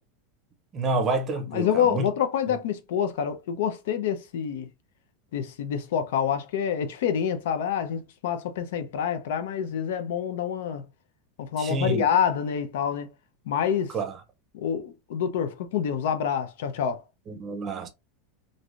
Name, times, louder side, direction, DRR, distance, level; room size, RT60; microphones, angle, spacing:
voice 1, 0.7-2.1 2.5-2.6 11.6-12.1 13.9-14.2 17.3-17.9, right 2 dB, 20° right, 0.5 m, -28 dB
voice 2, 1.5-4.7 5.3-10.9 11.4-13.1 13.5-13.9 14.5-17.0, left 8 dB, 75° left, 0.6 m, -27 dB
3.1 x 2.6 x 2.4 m
supercardioid pair, 175°, 0 cm